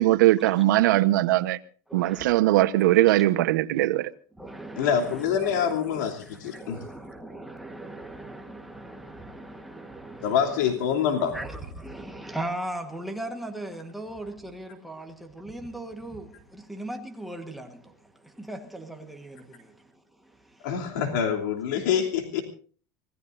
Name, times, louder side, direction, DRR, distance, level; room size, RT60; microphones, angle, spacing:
voice 1, 0.0-1.6 1.9-4.1, right 15 dB, 85° right, 1.1 m, -20 dB
voice 2, 1.9-2.3 4.4-20.9, right 1 dB, ahead, 1.4 m, -39 dB
voice 3, 4.8-6.8 10.2-11.3 20.6-22.4, left 8 dB, 70° left, 3.0 m, -26 dB
25.5 x 19.0 x 2.6 m
supercardioid pair, 180°, 10 cm